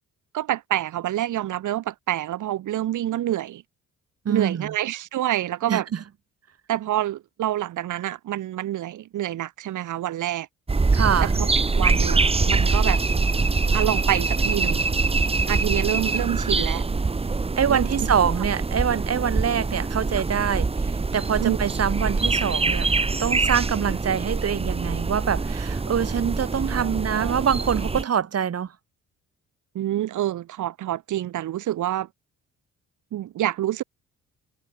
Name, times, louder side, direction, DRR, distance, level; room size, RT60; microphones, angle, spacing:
voice 1, 0.3-3.6 4.3-5.9 6.7-10.5 11.2-13.0 13.7-14.9 15.5-16.8 17.7-18.1 19.5-19.6 20.2-20.3 21.4-21.6 26.7-27.3 29.7-32.1 33.1-33.8, right 13 dB, 80° right, 6.2 m, -27 dB
voice 2, 4.2-4.7 5.7-6.0 10.9-11.3 17.6-28.7, right 8 dB, 55° right, 6.8 m, -25 dB
sound 1, 10.7-28.0, right 3 dB, 20° right, 1.3 m, -24 dB
cardioid pair, 90°, 30 cm